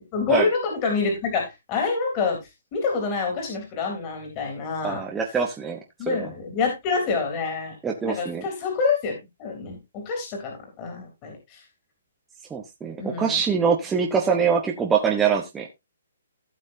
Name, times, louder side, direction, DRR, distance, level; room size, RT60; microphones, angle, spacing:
voice 1, 0.1-2.4 2.7-5.0 6.0-7.8 8.0-11.6 13.0-13.4, left 4 dB, 25° left, 2 dB, 3.4 m, -27 dB
voice 2, 4.8-5.8 6.1-6.2 7.8-8.4 12.5-15.7, right 6 dB, 10° right, 0 dB, 1.1 m, -24 dB
15.5 x 6.2 x 2.7 m, 0.21 s
hypercardioid pair, 160°, 0 cm